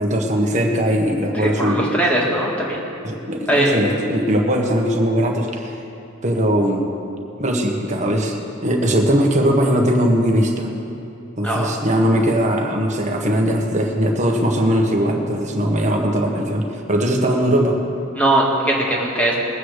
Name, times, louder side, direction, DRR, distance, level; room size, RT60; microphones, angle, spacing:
voice 1, 0.0-1.8 3.0-5.8 6.2-6.9 7.4-10.7 11.4-17.8, equal, 35° right, 0 dB, 1.5 m, -19 dB
voice 2, 1.3-2.8 3.5-3.8 11.4-11.7 18.1-19.4, right 1 dB, 5° left, -4 dB, 2.1 m, -20 dB
21.0 x 8.7 x 4.9 m, 2.9 s
head